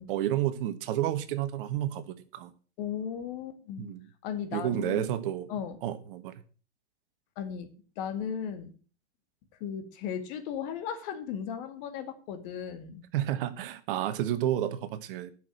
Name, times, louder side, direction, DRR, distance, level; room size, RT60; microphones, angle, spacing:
voice 1, 0.1-2.5 3.8-4.1 4.5-5.5 5.8-6.3 13.1-15.3, right 12 dB, 50° right, 12 dB, 1.3 m, -30 dB
voice 2, 2.8-3.9 4.2-5.1 5.5-5.8 7.4-7.7 8.0-8.7 9.6-13.0, left 8 dB, 45° left, 9 dB, 2.1 m, -36 dB
10.5 x 6.2 x 7.4 m, 0.39 s
hypercardioid pair, 125°, 34 cm